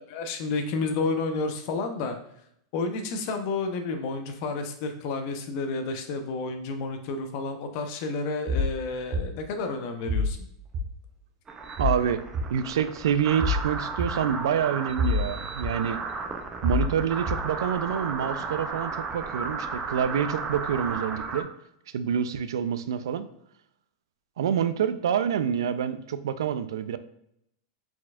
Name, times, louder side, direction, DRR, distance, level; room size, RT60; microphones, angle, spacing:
voice 1, 0.0-2.2 2.7-10.4, left 3 dB, 50° left, 7 dB, 0.6 m, -30 dB
sound 1, 8.5-8.7 9.1-9.2 10.1-10.3 10.7-10.9 11.8-12.0 12.3-12.4 13.4-13.6 14.0-14.1 15.0-15.3 15.6-15.7 16.6-16.9 17.3-17.4, left 2 dB, 40° right, 0.9 m, -25 dB
sound 2, 11.5-21.4, right 4 dB, 20° right, 0.4 m, -34 dB
voice 2, 11.8-12.2 12.5-16.0 16.6-21.5 21.9-23.3 24.4-27.0, right 8 dB, 90° right, 12 dB, 0.3 m, -27 dB
4.3 x 4.2 x 2.4 m, 0.73 s
supercardioid pair, 140°, 2 cm